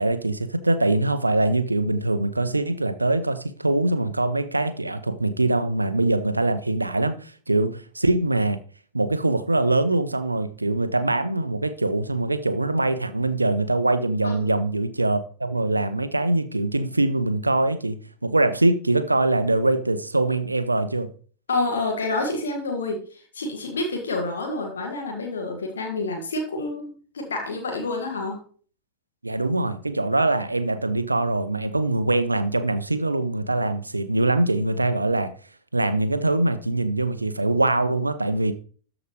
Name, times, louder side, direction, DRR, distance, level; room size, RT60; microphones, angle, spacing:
voice 1, 0.0-8.6 8.9-21.1 29.2-35.3 35.7-38.5, right 2 dB, 85° right, 0.6 m, -23 dB
voice 2, 21.5-28.4, left 2 dB, 70° left, 1.9 m, -28 dB
13.0 x 5.0 x 3.2 m
figure-of-eight pair, 90°, 0 cm